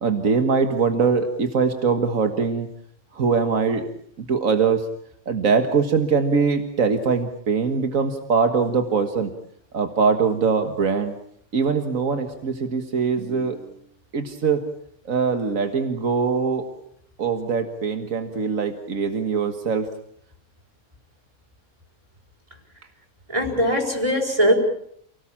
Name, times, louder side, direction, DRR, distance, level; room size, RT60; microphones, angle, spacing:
voice 1, 0.0-2.7 3.1-3.9 4.2-4.8 5.3-9.3 9.7-11.2 11.5-13.6 14.1-14.6 15.1-16.7 17.2-19.9, right 5 dB, 90° right, 6 dB, 2.0 m, -22 dB
voice 2, 23.3-24.5, equal, 25° right, 2 dB, 4.8 m, -20 dB
29.0 x 18.5 x 7.4 m, 0.68 s
omnidirectional pair, 1.4 m